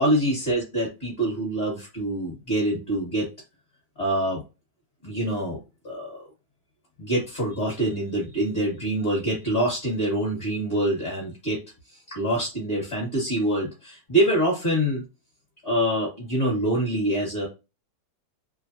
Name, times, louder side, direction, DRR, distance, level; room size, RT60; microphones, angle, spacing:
voice 1, 0.0-3.3 4.0-4.4 5.0-5.6 5.8-6.3 7.0-11.6 12.1-15.0 15.6-17.5, right 1 dB, 35° left, -3 dB, 1.3 m, -25 dB
3.2 x 2.0 x 2.6 m, 0.28 s
omnidirectional pair, 2.0 m